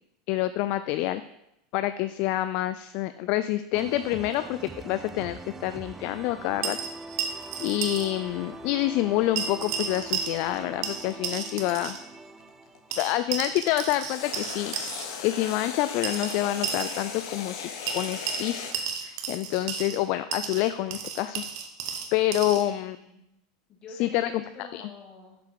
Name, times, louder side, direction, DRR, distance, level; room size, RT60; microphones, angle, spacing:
voice 1, 0.3-1.2 1.7-6.8 7.6-12.0 13.0-14.7 15.2-17.7 17.9-18.7 19.0-21.4 22.1-23.0 24.0-24.4 24.7-24.9, left 14 dB, 55° left, 12 dB, 0.3 m, -27 dB
sound 1, 3.7-13.6, right 3 dB, 15° right, 0.4 m, -43 dB
sound 2, 6.6-8.1 8.4-8.5 9.4-10.6 10.8-12.0 12.9-15.1 16.0-17.1 17.9-20.0 20.3-22.6, right 7 dB, 70° right, 1.3 m, -33 dB
sound 3, 7.7-12.9 14.0-18.8, left 6 dB, 75° left, 1.1 m, -38 dB
voice 2, 22.5-23.2 23.7-25.4, left 3 dB, 35° left, 0 dB, 2.4 m, -47 dB
7.0 x 6.8 x 4.6 m, 0.84 s
supercardioid pair, 120°, 2 cm